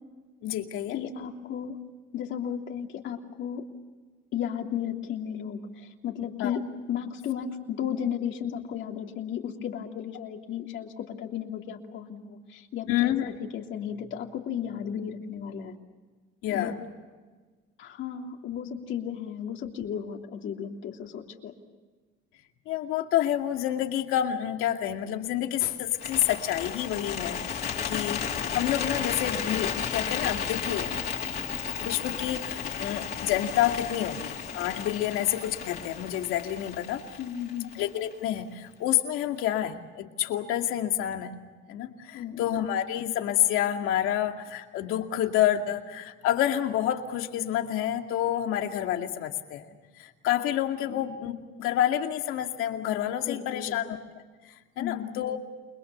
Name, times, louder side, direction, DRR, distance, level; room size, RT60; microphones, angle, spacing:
voice 1, 0.4-1.0 6.4-6.6 12.9-13.3 16.4-16.7 22.7-30.9 31.8-37.0 37.8-41.3 41.7-49.6 50.0-53.9 54.8-55.4, left 11 dB, 85° left, 4 dB, 2.4 m, -28 dB
voice 2, 0.9-1.8 2.1-3.6 4.3-6.6 6.9-15.7 16.5-16.7 17.8-21.5 37.2-37.7 42.1-42.7 50.8-51.1 53.2-54.0 54.8-55.3, left 8 dB, 65° left, 2 dB, 3.1 m, -34 dB
Bird, 25.9-38.1, left 7 dB, 45° left, 3.4 m, -33 dB
29.5 x 22.0 x 7.0 m, 1.4 s
cardioid pair, 130°, 21 cm